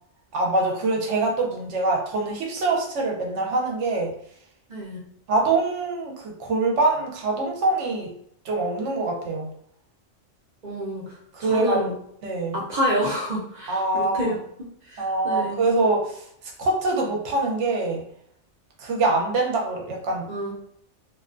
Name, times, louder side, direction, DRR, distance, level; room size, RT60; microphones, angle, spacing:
voice 1, 0.3-4.1 5.3-8.1 8.4-9.5 11.3-11.8 12.2-12.6 13.7-14.4 15.0-18.0 18.8-20.3, right 2 dB, 70° right, 0 dB, 0.9 m, -24 dB
voice 2, 10.6-11.0 11.4-11.9 12.5-14.4 14.9-15.5 20.3-20.5, equal, 50° right, -4 dB, 0.5 m, -27 dB
2.5 x 2.1 x 2.5 m, 0.67 s
omnidirectional pair, 1.3 m